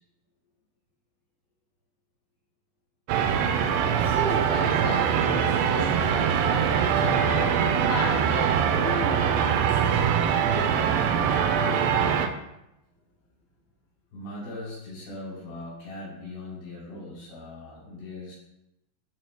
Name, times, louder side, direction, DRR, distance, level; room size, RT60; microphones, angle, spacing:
sound 1, 3.1-12.3, right 7 dB, 85° right, 2.4 m, -23 dB
voice 1, 4.0-10.9 14.5-14.6, left 1 dB, 5° left, -6 dB, 1.8 m, -35 dB
voice 2, 14.1-18.4, left 2 dB, 55° left, -6 dB, 5.8 m, -40 dB
16.0 x 7.8 x 2.2 m, 0.87 s
omnidirectional pair, 5.8 m